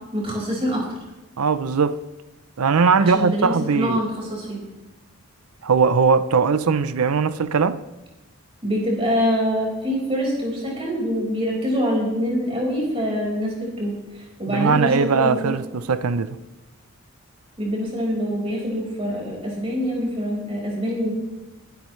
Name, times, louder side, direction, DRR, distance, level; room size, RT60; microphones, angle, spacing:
voice 1, 0.1-0.9 3.0-4.6 8.6-15.4 17.6-21.1, equal, 25° right, 4.9 m, -25 dB
voice 2, 1.4-2.0 2.6-4.0 5.6-7.8 14.5-16.4, right 5 dB, 85° right, 0.6 m, -20 dB
23.0 x 11.5 x 3.2 m
head